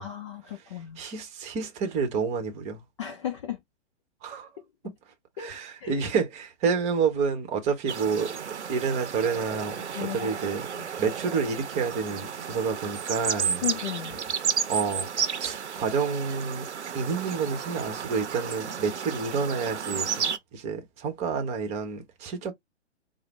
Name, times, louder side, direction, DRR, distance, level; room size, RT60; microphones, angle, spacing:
voice 1, 0.0-1.0 3.0-3.6 5.4-5.5 5.8-6.0 9.9-10.4 10.7-10.9 13.6-14.2, left 11 dB, 25° left, 0.4 m, -34 dB
voice 2, 1.0-2.8 4.2-4.5 4.8-4.9 5.4-8.4 8.7-10.7 11.0-13.6 14.7-15.1 15.4-16.7 16.9-22.5, right 5 dB, 20° right, 0.9 m, -29 dB
sound 1, 7.9-20.4, right 7 dB, 70° right, 0.7 m, -32 dB
4.9 x 2.0 x 3.1 m
figure-of-eight pair, 120°, 35 cm